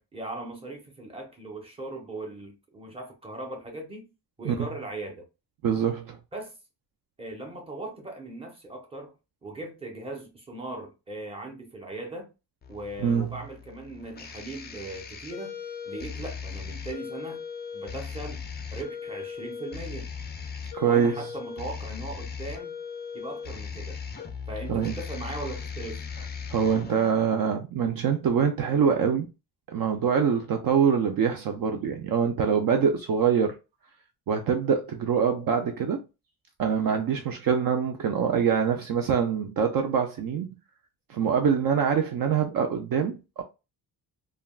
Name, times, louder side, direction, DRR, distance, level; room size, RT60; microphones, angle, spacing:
voice 1, 0.0-4.1 4.4-5.3 6.3-6.5 7.2-9.1 9.4-12.3 12.7-15.6 15.8-17.4 17.7-18.4 18.7-20.1 20.8-22.8 23.1-24.0 24.5-26.1, right 2 dB, 15° right, 0.8 m, -39 dB
voice 2, 5.6-6.2 13.0-13.3 20.7-21.2 24.7-25.0 26.5-29.3 29.7-33.6 34.3-36.0 36.6-40.5 41.1-43.4, right 7 dB, 55° right, 0.4 m, -24 dB
sound 1, 12.6-27.1, left 6 dB, 25° left, 0.3 m, -38 dB
3.3 x 2.2 x 2.3 m
wide cardioid pair, 150°, 42 cm